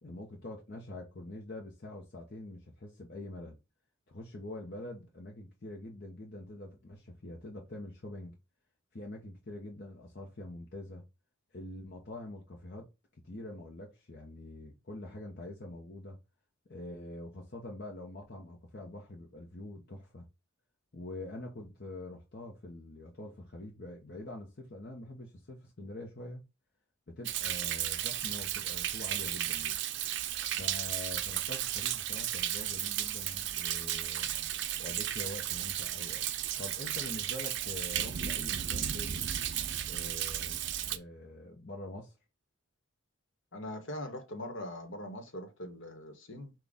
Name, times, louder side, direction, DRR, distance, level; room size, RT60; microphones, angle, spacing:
voice 1, 0.0-3.6 4.1-8.3 8.9-11.1 11.5-12.9 13.2-16.2 16.7-20.3 20.9-26.4 27.1-29.8 30.6-34.3 34.8-36.3 36.6-39.3 39.9-40.6 40.9-42.2, left 1 dB, 50° left, 0.8 m, -45 dB
Thunder, 27.3-41.0, right 11 dB, 55° right, 0.5 m, -34 dB
voice 2, 43.5-46.5, left 1 dB, 65° left, 1.2 m, -41 dB
6.1 x 2.4 x 3.5 m
head